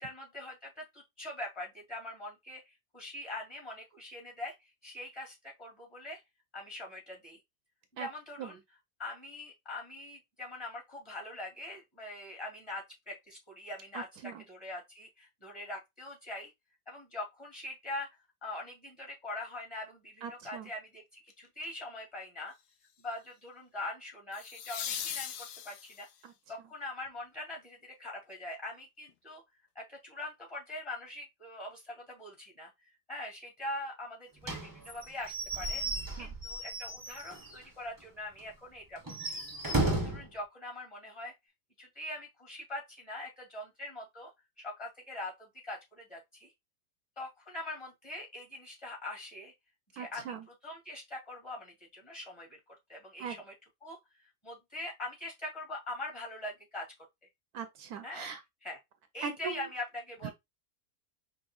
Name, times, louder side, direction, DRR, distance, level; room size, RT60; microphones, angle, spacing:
voice 1, 0.0-6.2 6.5-7.4 7.9-8.6 9.0-14.1 14.5-16.5 16.9-18.1 18.4-22.5 23.0-26.1 26.5-29.4 29.7-35.9 36.2-39.2 39.8-41.3 41.8-44.3 44.6-46.5 47.2-49.5 49.9-50.4 50.6-52.6 52.9-53.5 53.8-56.9 58.0-58.3 58.6-58.8 59.1-60.3, left 2 dB, 15° left, 2.3 m, -43 dB
voice 2, 13.9-14.4 20.2-20.7 26.2-26.3 36.2-36.3 50.0-50.4 53.2-53.4 57.5-58.4 59.2-59.7, right 6 dB, 75° right, 1.1 m, -40 dB
sound 1, 21.3-21.6 24.3-26.2 29.1-29.2, left 9 dB, 80° left, 1.2 m, -39 dB
Slam / Squeak / Wood, 34.4-37.6 38.0-38.1 38.4-38.5 39.0-40.3, right 2 dB, 20° right, 0.6 m, -34 dB
5.2 x 3.0 x 2.3 m
omnidirectional pair, 1.7 m